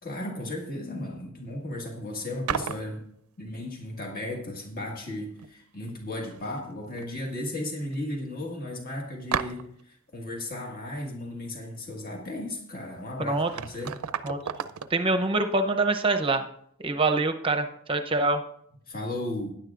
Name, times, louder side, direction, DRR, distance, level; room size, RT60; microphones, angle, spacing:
voice 1, 0.0-3.1 3.4-14.0 18.9-19.5, left 1 dB, 45° left, 0 dB, 1.8 m, -35 dB
sound 1, 2.5-2.9 5.0-5.1 5.4-6.0 6.3-7.1 7.3-7.4 7.9-8.0 9.3-9.8 12.9-13.0 13.3-15.0, right 7 dB, 80° right, 0.5 m, -33 dB
voice 2, 14.9-16.4 16.8-18.4, right 2 dB, 25° right, 6 dB, 0.7 m, -25 dB
16.0 x 10.5 x 2.5 m, 0.69 s
head